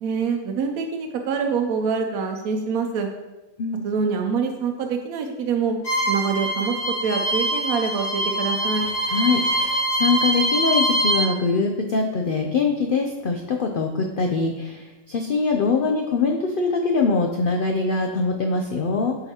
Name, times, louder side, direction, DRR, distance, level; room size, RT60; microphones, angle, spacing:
voice 1, 0.0-3.1 3.8-5.7 6.1-8.9, right 5 dB, 80° right, 3 dB, 1.0 m, -25 dB
Bowed string instrument, 5.8-11.3, right 1 dB, 65° left, 2.3 m, -23 dB
voice 2, 9.1-19.2, left 4 dB, 85° left, 3 dB, 0.4 m, -23 dB
7.8 x 4.8 x 2.9 m, 1.1 s
omnidirectional pair, 1.5 m